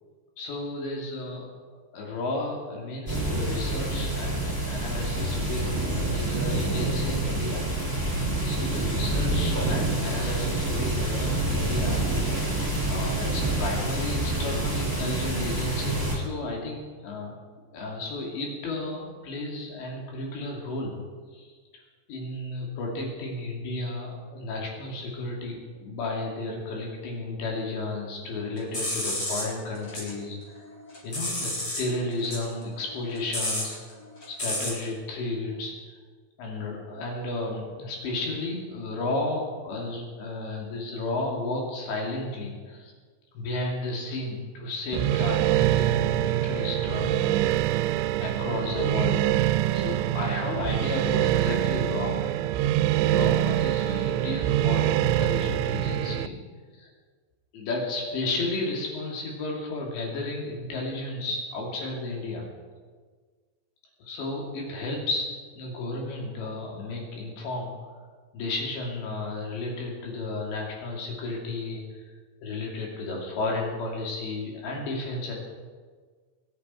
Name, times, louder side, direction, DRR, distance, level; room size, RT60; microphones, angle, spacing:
voice 1, 0.4-1.5 1.9-7.6 8.5-12.1 12.9-17.4 17.7-21.0 21.3-21.5 22.1-30.4 31.0-33.8 34.3-36.0 36.4-42.9 43.3-47.3 48.2-49.3 49.7-52.2 53.0-56.4 56.7-56.9 57.5-62.4 64.0-65.3 65.5-67.7 68.3-72.0 72.4-75.3, left 2 dB, 75° left, -1 dB, 5.0 m, -33 dB
sound 1, 3.1-16.2, right 2 dB, 5° right, 5.7 m, -27 dB
sound 2, 28.6-30.1 30.5-31.9 32.2-34.9, left 1 dB, 30° left, 4.7 m, -31 dB
sound 3, 44.9-56.3, right 14 dB, 90° right, 2.9 m, -25 dB
26.5 x 10.5 x 4.5 m, 1.5 s
omnidirectional pair, 5.2 m